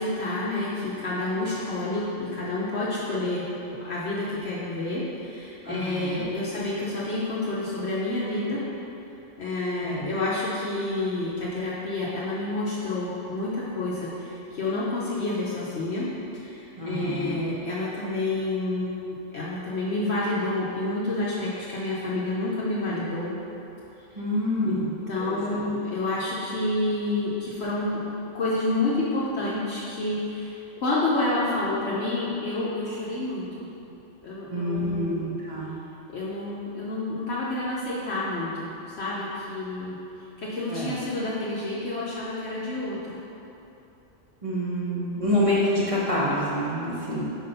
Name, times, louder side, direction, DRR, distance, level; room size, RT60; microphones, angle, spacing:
voice 1, 0.0-8.6 9.4-16.1 16.3-19.0 19.3-23.4 24.6-33.7 34.2-35.3 36.1-40.0 40.4-43.2, left 2 dB, 60° left, -7 dB, 0.9 m, -29 dB
voice 2, 5.6-6.2 9.8-10.1 16.8-17.5 24.1-25.4 34.5-35.7 40.7-40.9 44.4-47.2, equal, 30° right, -8 dB, 0.9 m, -27 dB
4.6 x 4.1 x 5.4 m, 3.0 s
omnidirectional pair, 1.3 m